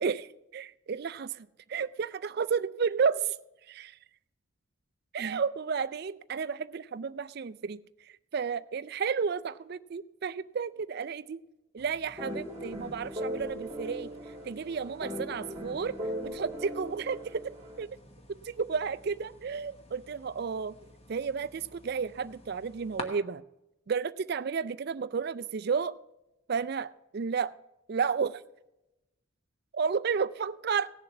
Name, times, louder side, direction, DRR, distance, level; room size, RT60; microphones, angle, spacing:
voice 1, 0.5-3.4 3.7-4.0 5.1-7.8 8.3-11.4 11.7-14.1 14.4-16.0 16.2-17.9 18.3-20.7 21.1-23.4 23.9-26.0 26.5-27.5 27.9-28.4 29.7-30.9, right 6 dB, 50° right, 14 dB, 0.4 m, -32 dB
sound 1, 11.8-23.0, left 1 dB, 30° left, 1.1 m, -51 dB
sound 2, 12.2-17.8, equal, 20° right, 1.4 m, -39 dB
16.5 x 7.1 x 5.8 m, 0.92 s
head